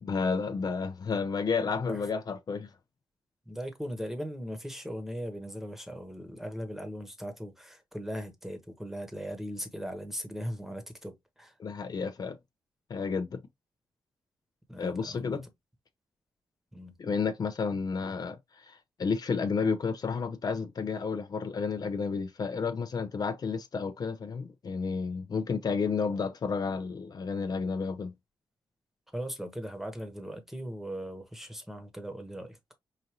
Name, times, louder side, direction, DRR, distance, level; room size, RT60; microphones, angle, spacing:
voice 1, 0.0-2.7 11.6-12.4 12.9-13.4 14.8-15.4 17.0-28.1, left 5 dB, 50° left, 0.6 m, -31 dB
voice 2, 3.5-11.5 14.7-15.4 16.7-16.9 29.1-32.7, equal, 5° right, 1.1 m, -39 dB
5.0 x 2.6 x 2.9 m
cardioid pair, 85°, 8 cm